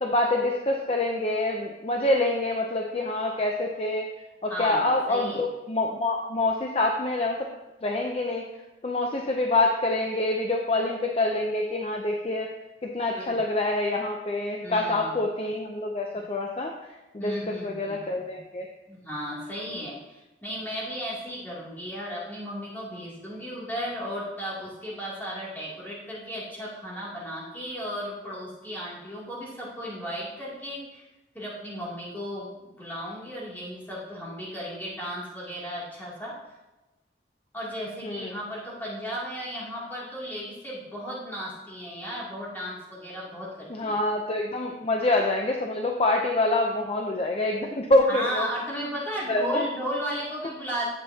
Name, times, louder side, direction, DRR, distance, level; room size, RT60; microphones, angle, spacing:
voice 1, 0.0-4.1 4.4-7.5 7.8-8.4 8.8-12.5 12.8-18.7 38.0-38.4 43.7-48.5 49.3-49.7, left 2 dB, 35° left, 1 dB, 0.6 m, -26 dB
voice 2, 4.5-5.4 13.2-13.4 14.6-15.2 17.2-18.4 18.9-31.0 31.3-36.3 37.5-44.0 48.1-50.9, equal, 10° left, -7 dB, 2.7 m, -35 dB
10.5 x 7.6 x 2.8 m, 1.1 s
head